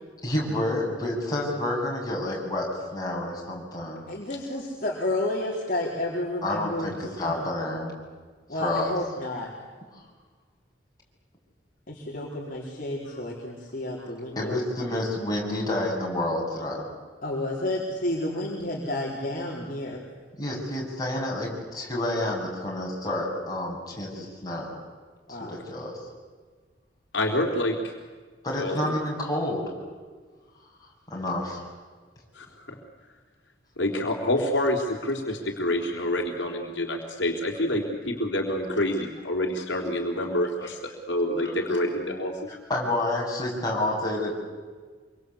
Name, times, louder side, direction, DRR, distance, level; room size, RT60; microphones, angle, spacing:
voice 1, 0.2-4.1 6.4-7.9 8.5-8.9 9.9-10.0 14.0-14.1 14.4-16.8 20.4-24.8 25.3-25.9 28.4-29.7 30.8-31.6 40.6-40.7 41.4-41.5 42.5-44.3, left 1 dB, 20° left, -3 dB, 7.8 m, -29 dB
voice 2, 4.1-7.3 8.5-9.5 11.9-14.6 17.2-20.0 25.3-25.6, left 1 dB, 45° left, -3 dB, 4.3 m, -31 dB
voice 3, 27.1-27.9 28.6-28.8 32.4-32.8 33.8-40.8 41.1-42.4, left 1 dB, 70° left, 1 dB, 3.8 m, -27 dB
27.0 x 24.5 x 8.4 m, 1.5 s
head